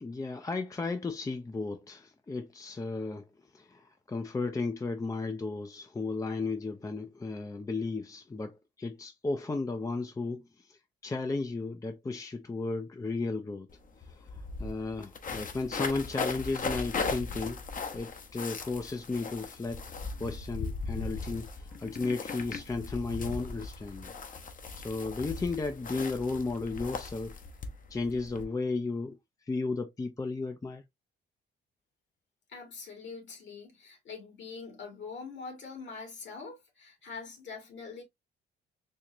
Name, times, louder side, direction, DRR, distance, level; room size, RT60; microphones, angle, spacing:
voice 1, 0.0-3.3 3.5-13.7 14.0-17.6 17.9-19.8 20.2-24.1 24.8-27.4 27.9-29.2 29.4-30.8, left 3 dB, 15° left, 0.5 m, -34 dB
sound 1, 13.7-13.8 14.0-28.4, left 4 dB, 45° left, 0.9 m, -38 dB
voice 2, 32.5-38.0, left 4 dB, 65° left, 2.0 m, -44 dB
4.3 x 2.4 x 2.9 m
cardioid pair, 90°, 20 cm